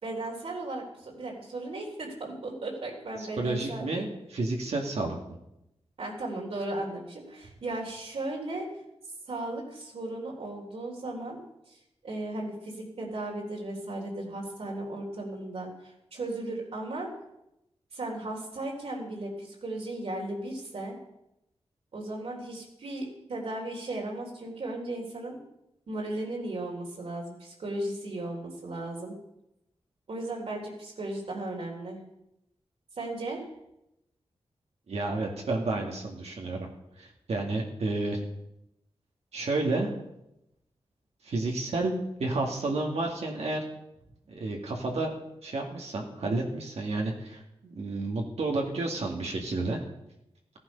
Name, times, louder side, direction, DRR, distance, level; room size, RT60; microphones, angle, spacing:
voice 1, 0.0-4.1 6.0-8.7 9.3-11.4 11.7-11.8 12.0-17.1 17.9-21.0 21.9-25.4 25.9-29.2 30.1-32.0 33.0-33.4, right 2 dB, 70° right, -2 dB, 3.7 m, -36 dB
voice 2, 3.2-5.4 34.9-36.7 37.0-38.2 39.3-39.9 41.2-41.9 42.2-43.6 44.3-45.1 45.4-49.8, right 2 dB, 90° right, 0 dB, 2.4 m, -31 dB
15.5 x 11.5 x 5.4 m, 0.86 s
wide cardioid pair, 110°, 11 cm